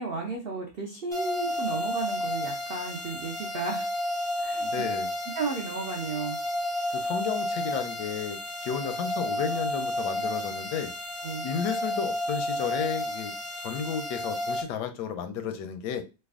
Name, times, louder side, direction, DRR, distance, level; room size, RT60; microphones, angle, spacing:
voice 1, 0.0-3.9 4.4-4.9 5.3-6.4 11.2-11.5, right 4 dB, 80° right, 0 dB, 0.5 m, -34 dB
sound 1, 1.1-14.6, left 1 dB, 25° right, 0.6 m, -32 dB
voice 2, 4.6-5.1 6.9-10.9 11.4-13.3 13.6-16.0, left 7 dB, 80° left, 8 dB, 1.2 m, -33 dB
3.2 x 2.2 x 3.5 m, 0.28 s
omnidirectional pair, 1.8 m